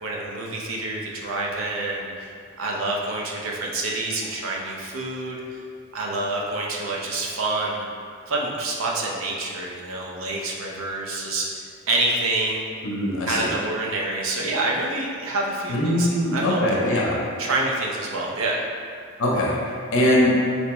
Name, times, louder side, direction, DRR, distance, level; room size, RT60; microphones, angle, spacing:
voice 1, 0.0-5.6 5.9-7.9 8.3-12.6 13.3-17.0 17.4-18.6, right 2 dB, 65° right, -2 dB, 0.6 m, -27 dB
voice 2, 12.8-13.5 15.7-17.2 19.2-20.4, left 1 dB, 65° left, -3 dB, 0.6 m, -22 dB
4.0 x 3.3 x 3.0 m, 2.2 s
head